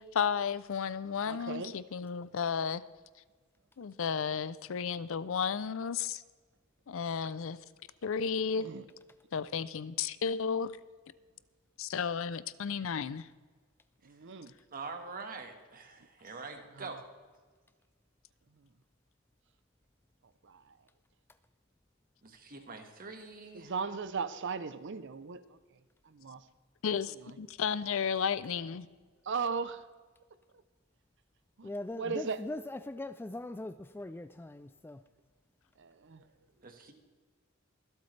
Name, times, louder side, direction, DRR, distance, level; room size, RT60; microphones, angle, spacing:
voice 1, 0.0-2.8 3.8-6.2 6.9-7.6 8.0-8.7 9.3-10.7 11.8-13.3 26.8-28.9, left 6 dB, 70° left, 17 dB, 0.5 m, -33 dB
voice 2, 1.2-1.7 8.5-8.8 14.0-14.5 16.8-16.9 20.4-20.6 23.5-25.4 26.1-26.4 27.2-27.3 29.3-29.8 31.6-31.7 32.0-32.4 35.8-36.2, right 5 dB, 60° right, 13 dB, 0.7 m, -37 dB
voice 3, 14.7-17.0 22.2-23.7 36.6-36.9, right 4 dB, 45° right, 5 dB, 1.6 m, -44 dB
voice 4, 31.6-35.0, left 1 dB, 10° left, 12 dB, 0.3 m, -41 dB
24.0 x 8.2 x 3.3 m, 1.4 s
head